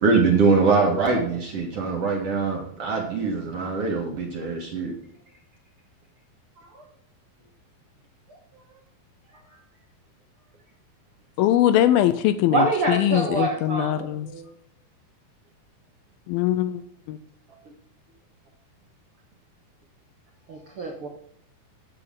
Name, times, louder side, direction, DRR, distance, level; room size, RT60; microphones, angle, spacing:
voice 1, 0.0-4.9, right 4 dB, 55° right, 0 dB, 1.8 m, -22 dB
voice 2, 8.3-8.6 9.5-9.6 12.5-14.5 20.5-21.1, right 3 dB, 75° right, 1 dB, 1.2 m, -27 dB
voice 3, 11.4-14.3 16.3-17.2, left 12 dB, 80° left, 12 dB, 2.2 m, -22 dB
9.8 x 7.9 x 3.7 m, 0.70 s
omnidirectional pair, 4.5 m